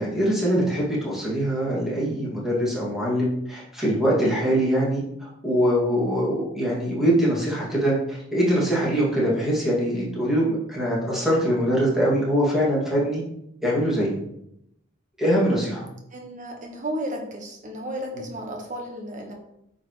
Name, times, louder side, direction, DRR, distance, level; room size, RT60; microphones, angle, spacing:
voice 1, 0.0-5.0 5.4-13.2 13.6-14.1 15.2-15.9, equal, ahead, -7 dB, 2.3 m, -23 dB
voice 2, 16.1-19.3, right 1 dB, 35° right, 1 dB, 1.3 m, -33 dB
9.0 x 5.3 x 3.2 m, 0.79 s
head